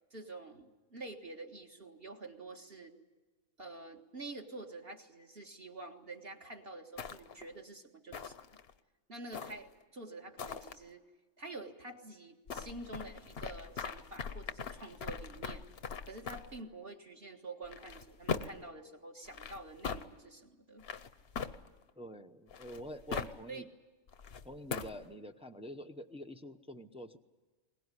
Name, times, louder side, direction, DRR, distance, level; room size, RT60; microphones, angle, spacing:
voice 1, 0.1-3.0 3.6-8.4 9.1-11.1 11.4-15.6 16.0-20.9 23.1-23.2 23.5-23.6, right 2 dB, 45° right, 1 dB, 1.9 m, -48 dB
sound 1, 7.0-7.5 8.1-8.7 9.3-9.8 10.4-10.7 12.5-16.6 17.6-18.7 19.2-20.0 20.8-21.9 22.5-23.4 24.1-25.0, left 6 dB, 50° left, 1.0 m, -41 dB
voice 2, 22.0-23.7 24.4-27.2, equal, 5° right, 6 dB, 0.6 m, -46 dB
21.5 x 19.5 x 9.8 m, 1.3 s
omnidirectional pair, 1.5 m